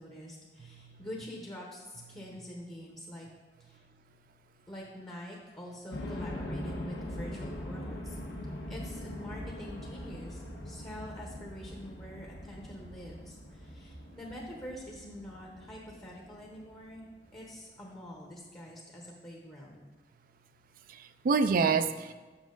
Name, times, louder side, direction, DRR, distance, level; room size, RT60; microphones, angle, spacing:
voice 1, 0.0-3.3 3.6-3.8 4.7-8.2 8.7-17.0 17.3-19.9, equal, 20° left, -2 dB, 0.9 m, -46 dB
voice 2, 0.6-1.1 20.9-22.1, right 5 dB, 55° right, 11 dB, 0.4 m, -28 dB
sound 1, 5.9-17.5, left 1 dB, 75° left, 1.4 m, -42 dB
7.3 x 6.0 x 3.8 m, 1.3 s
head